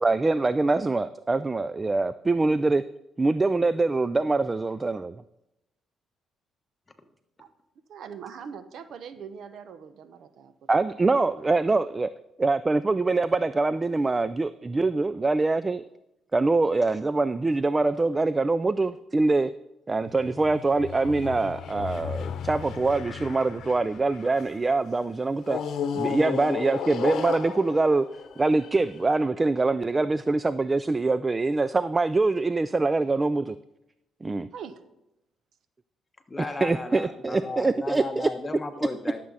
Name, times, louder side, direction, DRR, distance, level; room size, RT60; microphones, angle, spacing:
voice 1, 0.0-2.8 3.2-5.2 10.7-12.1 12.4-15.8 16.3-19.5 19.9-25.6 25.9-28.1 28.4-33.6 34.2-34.5 36.6-38.3, right 3 dB, 25° right, 14 dB, 0.3 m, -24 dB
voice 2, 7.9-10.7 34.5-34.7, right 7 dB, 70° right, 11 dB, 0.8 m, -41 dB
sound 1, 20.0-24.6 25.4-29.0, left 7 dB, 70° left, 0.9 m, -34 dB
voice 3, 36.3-39.2, left 2 dB, 20° left, 6 dB, 1.2 m, -35 dB
11.5 x 7.4 x 4.2 m, 0.88 s
cardioid pair, 90°, 0 cm